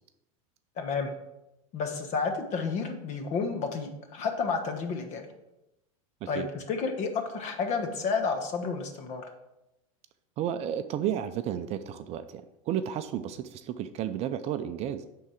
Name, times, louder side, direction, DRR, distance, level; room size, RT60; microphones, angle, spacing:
voice 1, 0.8-1.1 1.7-5.2 6.3-9.3, left 5 dB, 40° left, 5 dB, 1.3 m, -31 dB
voice 2, 10.4-15.0, right 10 dB, 35° right, 10 dB, 0.5 m, -32 dB
10.0 x 3.8 x 4.9 m, 0.91 s
supercardioid pair, 125°, 18 cm